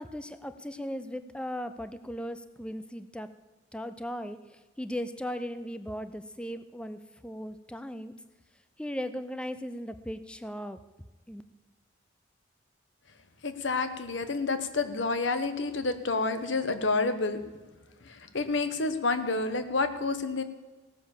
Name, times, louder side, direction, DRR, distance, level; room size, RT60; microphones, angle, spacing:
voice 1, 0.0-3.3 3.7-8.1 8.8-10.8 11.3-11.4, equal, 5° left, 11 dB, 0.5 m, -37 dB
voice 2, 13.4-17.4 18.0-20.4, left 3 dB, 70° left, 10 dB, 1.1 m, -29 dB
17.0 x 7.3 x 7.2 m, 1.3 s
head